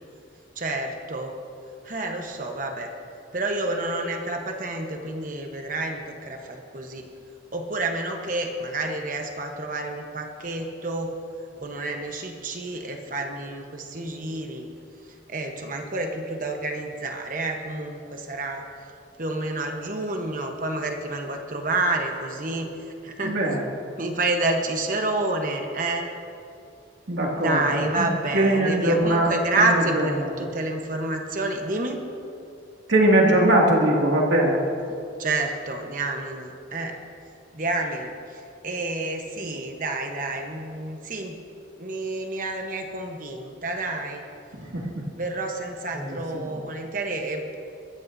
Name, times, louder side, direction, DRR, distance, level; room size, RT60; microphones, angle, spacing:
voice 1, 0.6-1.3 1.8-2.9 3.3-7.1 7.5-11.2 11.6-14.7 15.3-18.7 19.2-23.4 24.0-26.1 27.3-32.0 35.2-37.0 37.5-41.4 41.8-44.3 45.2-47.6, right 2 dB, 45° right, 3 dB, 1.1 m, -29 dB
voice 2, 23.2-23.6 27.1-28.1 28.3-30.0 32.9-34.6 44.5-44.9 45.9-46.2, right 1 dB, 75° right, -1 dB, 2.4 m, -21 dB
21.5 x 14.5 x 2.7 m, 2.5 s
head